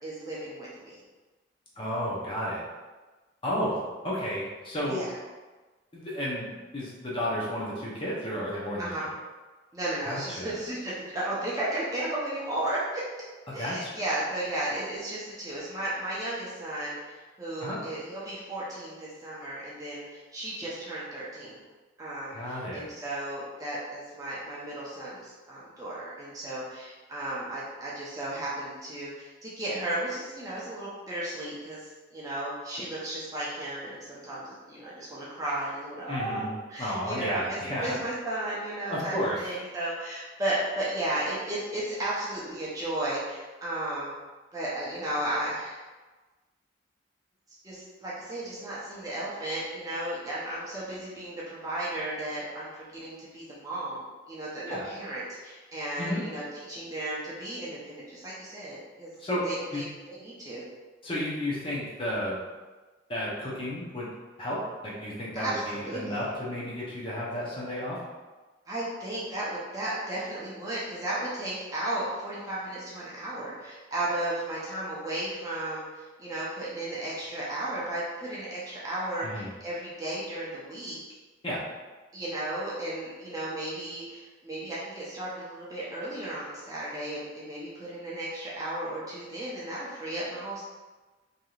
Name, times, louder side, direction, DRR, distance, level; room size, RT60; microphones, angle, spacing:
voice 1, 0.0-1.0 4.9-5.2 8.8-9.1 9.7-13.0 13.5-21.6 22.0-44.2 44.5-45.8 47.6-59.1 59.4-60.6 65.3-66.2 68.7-81.0 82.1-90.6, right 1 dB, 15° right, -7 dB, 0.6 m, -34 dB
voice 2, 1.8-2.6 3.4-5.0 5.9-9.1 10.0-10.6 13.6-13.9 17.6-17.8 22.3-22.9 36.1-36.5 36.8-38.0 38.9-39.4 54.6-54.8 56.0-56.2 59.2-59.4 59.7-59.8 61.0-62.4 63.1-64.1 64.4-68.0 79.2-79.5 81.4-81.7, equal, 25° left, -6 dB, 0.6 m, -32 dB
3.2 x 2.7 x 2.4 m, 1.3 s
head